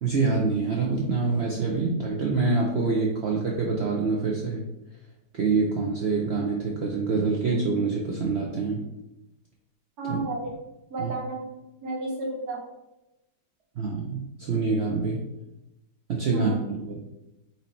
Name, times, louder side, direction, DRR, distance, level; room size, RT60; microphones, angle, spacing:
voice 1, 0.0-4.6 5.3-8.8 10.1-10.2 11.0-11.1 13.8-15.2 16.1-17.0, right 4 dB, 85° right, -1 dB, 0.5 m, -26 dB
voice 2, 10.0-10.5 10.9-11.5 11.8-12.6 16.3-16.6, right 2 dB, 65° right, -1 dB, 1.4 m, -32 dB
4.5 x 2.7 x 4.2 m, 0.93 s
omnidirectional pair, 1.9 m